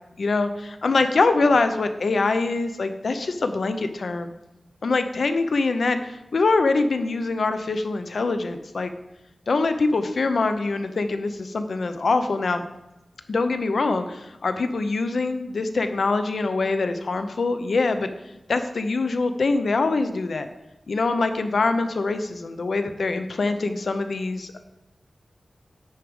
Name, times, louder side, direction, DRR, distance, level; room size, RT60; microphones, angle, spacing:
voice 1, 0.2-4.3 4.8-8.9 9.5-12.6 13.3-18.1 18.5-20.5 20.9-24.6, left 3 dB, 80° left, 8 dB, 0.7 m, -24 dB
9.7 x 4.6 x 5.2 m, 0.96 s
wide cardioid pair, 100°, 0 cm